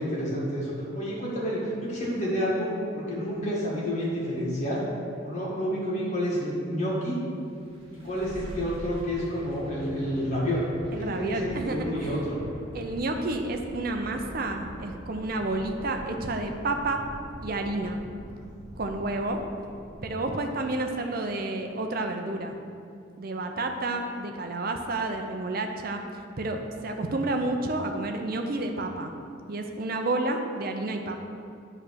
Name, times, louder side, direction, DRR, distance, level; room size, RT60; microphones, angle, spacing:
voice 1, 0.0-4.8 5.2-7.2 7.9-10.6 11.0-12.4, equal, 40° left, -6 dB, 1.8 m, -29 dB
sound 1, 7.4-20.5, equal, 30° right, 1.2 m, -43 dB
voice 2, 10.9-12.2 12.7-17.0 17.4-18.0 18.8-19.4 20.0-22.5 23.2-29.1 29.5-31.2, right 2 dB, 50° right, 4 dB, 0.6 m, -30 dB
8.2 x 3.3 x 6.3 m, 2.4 s
head